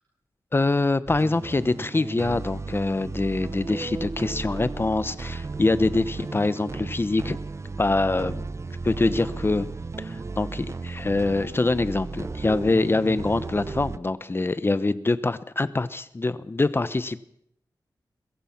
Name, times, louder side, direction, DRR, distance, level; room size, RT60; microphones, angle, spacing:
voice 1, 0.5-7.4 7.8-8.4 8.8-9.7 10.0-17.2, left 2 dB, 30° left, 14 dB, 1.0 m, -24 dB
sound 1, 1.1-14.0, right 3 dB, 40° right, 0.9 m, -35 dB
23.0 x 22.5 x 6.0 m, 0.72 s
wide cardioid pair, 100°, 8 cm